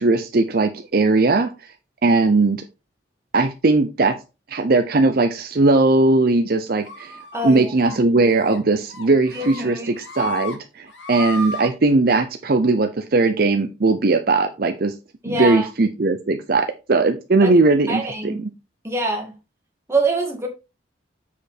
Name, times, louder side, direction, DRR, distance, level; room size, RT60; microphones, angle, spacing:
voice 1, 0.0-1.5 2.0-2.6 3.3-4.1 4.5-7.2 7.4-14.9 15.3-18.5, right 3 dB, 50° right, 0.6 m, -19 dB
sound 1, 6.8-7.4 7.8-8.0 8.3-8.6 8.9-9.6 10.0-10.6 10.9-11.7, left 3 dB, 75° left, 1.7 m, -33 dB
voice 2, 7.3-7.7 9.3-10.0 15.2-15.7 17.4-17.5 17.9-18.4 18.8-19.3 19.9-20.5, right 3 dB, 15° right, 2.0 m, -24 dB
7.0 x 5.1 x 4.2 m
head